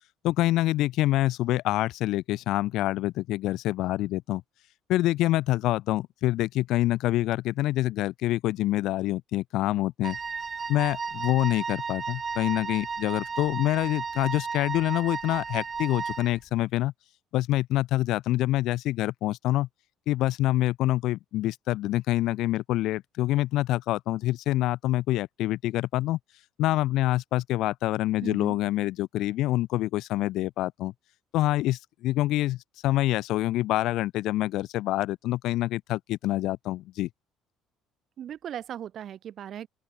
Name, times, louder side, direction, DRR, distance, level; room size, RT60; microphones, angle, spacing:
voice 1, 0.2-4.4 4.9-10.2 10.7-16.9 17.3-19.7 20.1-26.2 26.6-30.9 31.3-32.6 32.8-37.1, left 16 dB, 60° left, 0.6 m, -26 dB
Wind instrument woodwind instrument, 10.0-16.4, right 5 dB, 35° right, 0.5 m, -34 dB
voice 2, 28.2-28.6 38.2-39.7, right 10 dB, 50° right, 1.2 m, -38 dB
open air
figure-of-eight pair, 55°, 0 cm